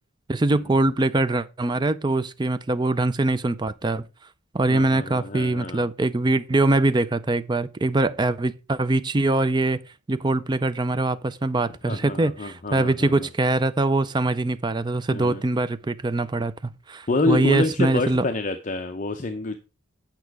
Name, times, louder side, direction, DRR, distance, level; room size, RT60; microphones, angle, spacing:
voice 1, 0.3-4.0 4.5-9.8 10.1-18.2, right 2 dB, 20° right, 0.4 m, -23 dB
voice 2, 4.7-5.9 11.9-13.3 15.1-15.4 17.1-19.6, left 2 dB, 35° left, 0.6 m, -27 dB
8.6 x 5.9 x 4.6 m
head